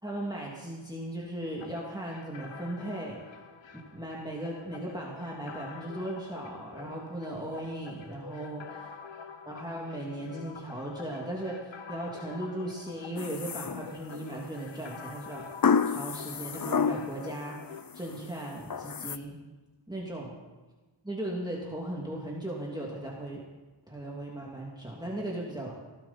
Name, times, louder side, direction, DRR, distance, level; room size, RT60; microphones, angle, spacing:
voice 1, 0.0-3.2 3.7-8.6 9.4-17.6 17.9-19.4 19.9-20.3 21.0-23.4 23.9-25.7, right 1 dB, 10° right, -3 dB, 2.7 m, -37 dB
sound 1, 1.6-17.8, left 5 dB, 70° left, 1.0 m, -47 dB
sound 2, 13.2-14.2 15.6-17.3 17.7-18.2 18.7-19.2, left 6 dB, 45° left, 0.7 m, -29 dB
19.0 x 14.0 x 4.4 m, 1.2 s
wide cardioid pair, 50°, 46 cm